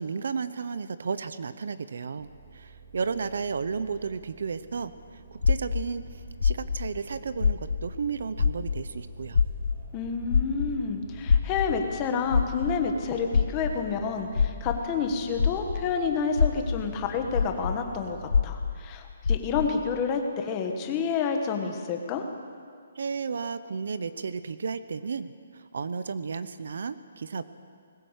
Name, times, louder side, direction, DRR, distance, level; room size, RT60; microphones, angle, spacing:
voice 1, 0.0-9.4 22.9-27.4, right 5 dB, 60° right, 13 dB, 0.9 m, -33 dB
sound 1, 2.2-18.4, right 4 dB, 35° right, 6.2 m, -48 dB
sound 2, 5.4-8.1 8.3-15.9 16.3-19.8, left 5 dB, 75° left, 1.3 m, -26 dB
voice 2, 9.9-22.3, left 5 dB, 15° left, 4 dB, 1.4 m, -29 dB
20.5 x 18.5 x 8.2 m, 2.2 s
hypercardioid pair, 175°, 0 cm